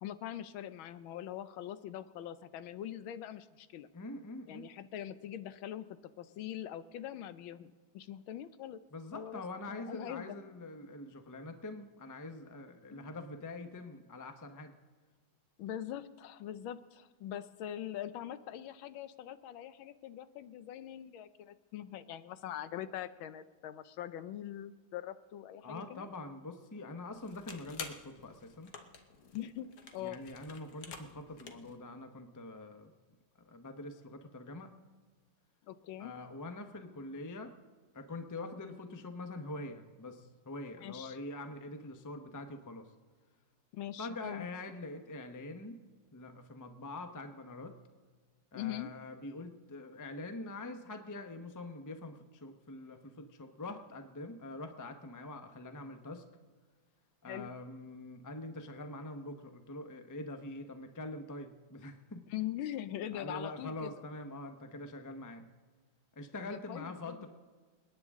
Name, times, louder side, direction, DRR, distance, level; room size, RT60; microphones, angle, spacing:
voice 1, 0.0-3.9 4.5-8.8 9.1-9.4 9.7-10.4 12.9-13.1 15.6-26.1 29.3-30.2 35.7-36.1 40.8-41.2 43.7-44.5 48.5-48.9 57.3-57.5 62.3-63.9 66.7-67.2, left 11 dB, 90° left, 13 dB, 1.5 m, -42 dB
voice 2, 3.9-4.7 8.9-14.7 25.6-28.7 30.0-32.9 33.4-34.7 36.0-37.5 37.9-42.9 44.0-45.8 46.1-47.7 48.5-56.2 57.2-62.3 63.1-65.5 66.2-67.3, left 2 dB, 25° left, 7 dB, 0.4 m, -44 dB
sound 1, 27.1-31.8, left 5 dB, 55° left, 1.4 m, -49 dB
28.5 x 9.6 x 3.6 m, 1.5 s
omnidirectional pair, 2.1 m